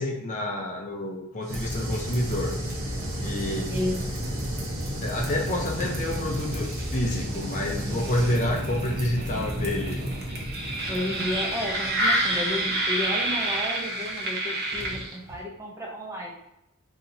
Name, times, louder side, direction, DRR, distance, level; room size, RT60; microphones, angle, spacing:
voice 1, 0.0-2.5 3.2-3.7 5.0-10.0, left 1 dB, 35° left, 0 dB, 0.5 m, -29 dB
sound 1, 1.4-8.4, right 1 dB, 70° right, 1.0 m, -39 dB
sound 2, 1.5-15.4, right 1 dB, 45° right, 0.8 m, -29 dB
voice 2, 10.8-16.3, left 1 dB, 15° right, -2 dB, 0.6 m, -32 dB
5.4 x 2.8 x 2.7 m, 0.88 s
head